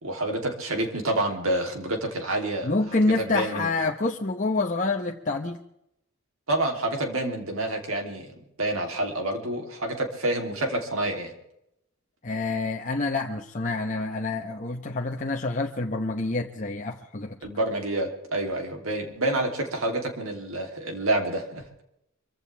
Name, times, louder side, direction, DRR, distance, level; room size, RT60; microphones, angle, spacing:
voice 1, 0.0-2.7 3.0-3.7 6.5-11.3 17.4-21.8, right 1 dB, 75° right, 3 dB, 3.1 m, -28 dB
voice 2, 2.6-5.6 12.2-17.4, left 2 dB, 35° left, 1 dB, 1.0 m, -27 dB
25.0 x 16.0 x 3.5 m, 0.78 s
head